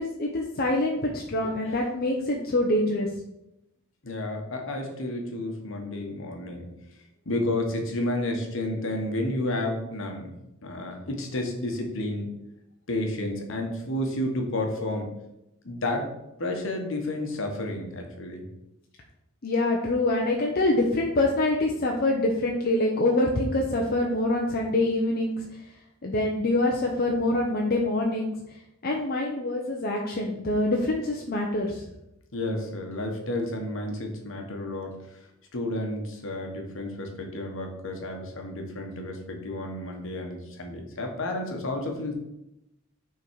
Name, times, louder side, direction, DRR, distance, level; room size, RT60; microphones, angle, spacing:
voice 1, 0.0-3.1 19.4-25.4 26.0-28.3 28.8-31.8, left 2 dB, 50° left, 0 dB, 0.7 m, -25 dB
voice 2, 4.0-6.7 7.2-10.3 10.6-12.3 12.9-15.1 15.6-16.1 16.4-18.4 32.3-35.2 35.5-42.1, left 1 dB, 70° left, 3 dB, 1.2 m, -31 dB
6.0 x 3.9 x 4.6 m, 0.86 s
head